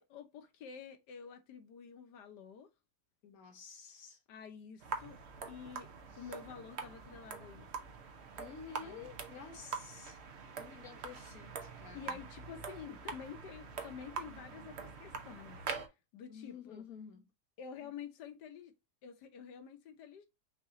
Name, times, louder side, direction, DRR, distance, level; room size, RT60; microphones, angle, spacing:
voice 1, 0.0-2.7 4.3-5.2 5.5-5.9 6.2-7.7 8.8-9.1 11.9-15.6 16.1-16.9 17.6-18.7 19.0-20.3, left 7 dB, 85° left, 1.5 m, -49 dB
voice 2, 3.2-4.2 6.1-6.3 8.4-10.2 10.6-12.2 16.3-17.3 17.8-17.9, left 6 dB, 60° left, 1.5 m, -51 dB
sound 1, 4.8-15.9, right 5 dB, 50° right, 0.9 m, -45 dB
6.0 x 2.9 x 2.5 m
omnidirectional pair, 1.8 m